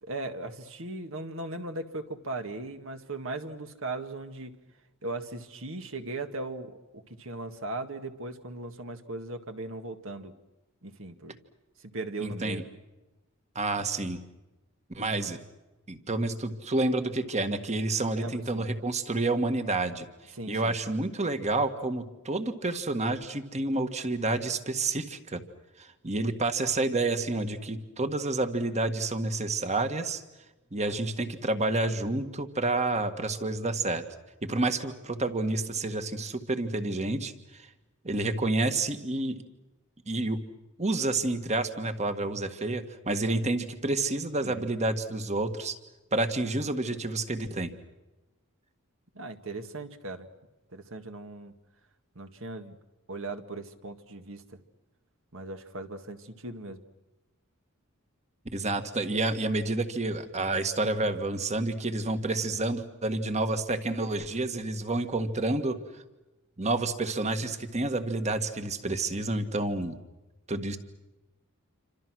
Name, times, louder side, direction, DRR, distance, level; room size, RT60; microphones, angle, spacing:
voice 1, 0.0-4.5 5.0-10.3 10.8-11.4 11.9-12.7 18.1-18.7 20.3-20.8 44.4-44.7 49.2-50.3 50.7-51.5 52.2-52.8 53.1-54.6 55.3-56.8, right 2 dB, 65° right, 7 dB, 2.0 m, -38 dB
voice 2, 12.2-12.6 13.5-14.2 14.9-15.4 15.9-20.1 20.5-25.4 25.8-30.2 30.7-34.0 34.4-37.7 38.0-39.3 40.1-40.4 40.8-45.7 46.1-47.7 58.5-65.8 66.6-70.0 70.5-70.8, right 2 dB, 30° right, 8 dB, 1.8 m, -29 dB
28.5 x 26.0 x 6.3 m, 1.0 s
head